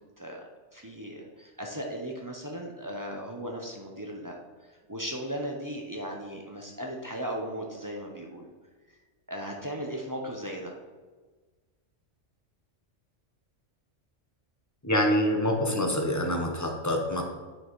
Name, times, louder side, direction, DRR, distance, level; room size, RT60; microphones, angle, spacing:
voice 1, 0.7-8.5 8.9-9.0 9.3-10.8, equal, 20° right, 0 dB, 0.8 m, -37 dB
voice 2, 14.8-17.2, left 1 dB, 15° left, 2 dB, 0.8 m, -26 dB
9.4 x 6.2 x 3.2 m, 1.4 s
omnidirectional pair, 1.3 m